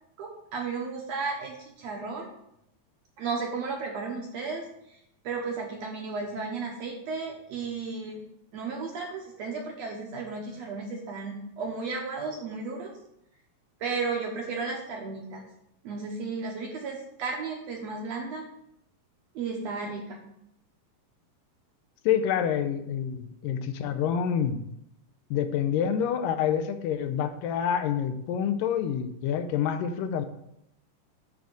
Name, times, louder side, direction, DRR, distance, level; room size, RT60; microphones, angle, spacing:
voice 1, 0.2-2.3 3.2-4.6 5.2-8.2 8.5-12.9 13.8-15.4 15.8-18.5 19.4-20.2, right 4 dB, 70° right, 0 dB, 1.7 m, -34 dB
voice 2, 22.1-24.6 25.3-30.3, left 8 dB, 85° left, 8 dB, 2.3 m, -27 dB
8.8 x 3.5 x 6.2 m, 0.78 s
omnidirectional pair, 3.9 m